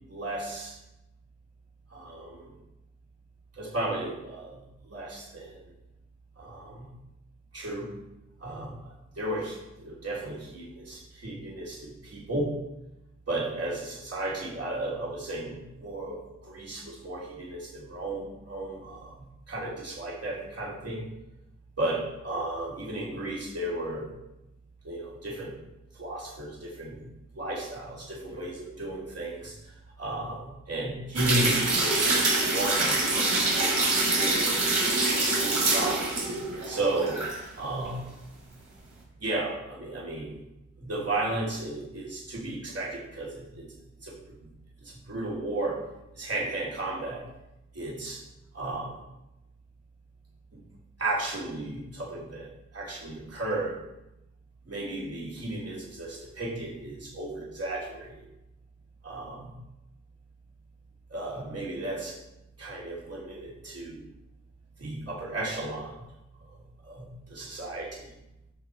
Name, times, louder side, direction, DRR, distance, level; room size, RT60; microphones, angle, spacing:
voice 1, 0.1-0.8 1.9-2.5 3.5-5.6 6.4-6.9 7.5-7.9 8.4-12.6 13.3-19.2 19.5-21.1 21.8-24.1 24.8-25.6 25.9-27.0 27.3-34.6 35.2-36.1 36.6-37.3 37.5-38.1 39.2-40.4 40.8-43.7 44.0-44.5 44.8-45.8 46.1-47.3 47.7-48.2 48.5-49.0 50.5-50.6 51.0-53.8 54.6-58.1 59.0-59.5 61.1-62.2 62.6-64.1 64.8-66.0 66.5-68.1, right 2 dB, 50° right, -5 dB, 3.2 m, -34 dB
sound 1, 31.1-37.4 37.7-37.8, right 2 dB, 80° right, 3.3 m, -25 dB
10.0 x 6.8 x 4.6 m, 0.91 s
cardioid pair, 55°, 31 cm